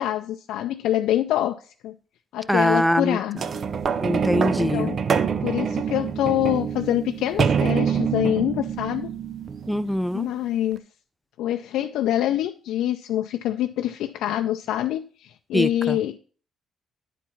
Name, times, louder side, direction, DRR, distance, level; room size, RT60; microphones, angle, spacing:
voice 1, 0.0-1.9 2.3-3.4 4.6-5.0 5.4-9.1 10.1-10.8 11.4-16.2, left 12 dB, 90° left, 0.4 m, -25 dB
voice 2, 2.5-3.2 4.0-4.9 9.7-10.3 15.5-16.0, equal, ahead, 0.4 m, -23 dB
sound 1, 3.4-10.1 10.8-10.9, right 6 dB, 55° right, 0.6 m, -25 dB
10.0 x 4.6 x 5.6 m
cardioid pair, 90°, 0 cm